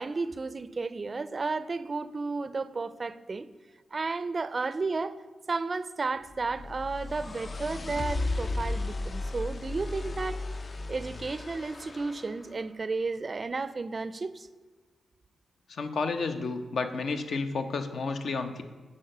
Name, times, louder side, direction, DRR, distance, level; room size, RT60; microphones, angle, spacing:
voice 1, 0.0-3.5 3.9-5.2 5.5-10.4 10.9-14.5, right 3 dB, 35° right, 15 dB, 0.4 m, -33 dB
sound 1, 6.3-12.4, left 2 dB, 40° left, 0.4 m, -35 dB
voice 2, 15.7-18.6, left 4 dB, 70° left, 7 dB, 0.8 m, -31 dB
8.5 x 5.0 x 6.6 m, 1.4 s
wide cardioid pair, 100°, 0 cm